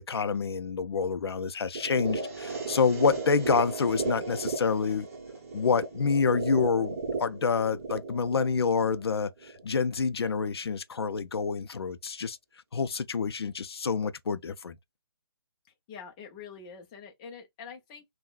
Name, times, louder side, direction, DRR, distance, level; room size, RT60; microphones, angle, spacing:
voice 1, 0.0-5.1 5.5-12.4 12.7-14.7, left 5 dB, 75° left, 0.4 m, -27 dB
sound 1, 1.7-9.7, right 4 dB, 35° right, 1.0 m, -35 dB
voice 2, 15.6-18.0, left 6 dB, 15° left, 0.5 m, -45 dB
3.5 x 2.2 x 2.4 m
figure-of-eight pair, 155°, 13 cm